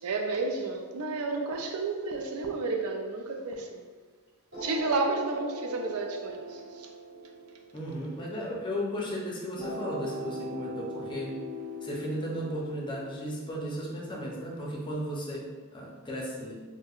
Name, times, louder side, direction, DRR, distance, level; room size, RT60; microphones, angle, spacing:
voice 1, 0.0-3.8 4.6-6.9, right 3 dB, 90° right, 3 dB, 0.5 m, -31 dB
sound 1, 4.5-8.9 9.6-14.5, equal, 50° right, 1.5 m, -40 dB
voice 2, 7.7-11.4 11.8-16.6, equal, 20° left, -3 dB, 0.6 m, -35 dB
4.4 x 2.2 x 2.4 m, 1.5 s
head